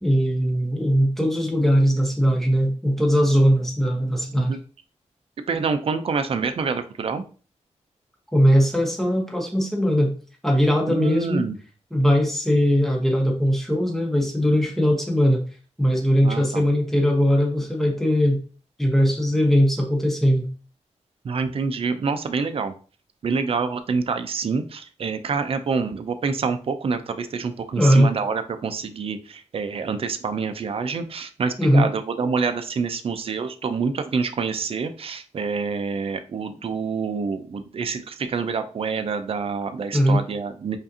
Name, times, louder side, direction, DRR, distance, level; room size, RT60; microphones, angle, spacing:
voice 1, 0.0-4.6 8.3-10.1 10.4-11.5 11.9-15.4 15.8-18.4 18.8-20.5 27.8-28.1 31.6-31.9 39.9-40.2, equal, ahead, 0 dB, 1.1 m, -20 dB
voice 2, 5.5-7.2 10.9-11.5 16.2-16.6 21.3-22.7 23.2-29.2 29.5-31.9 32.2-40.8, right 5 dB, 50° right, 9 dB, 0.5 m, -26 dB
5.1 x 2.5 x 2.7 m, 0.38 s
wide cardioid pair, 105°, 12 cm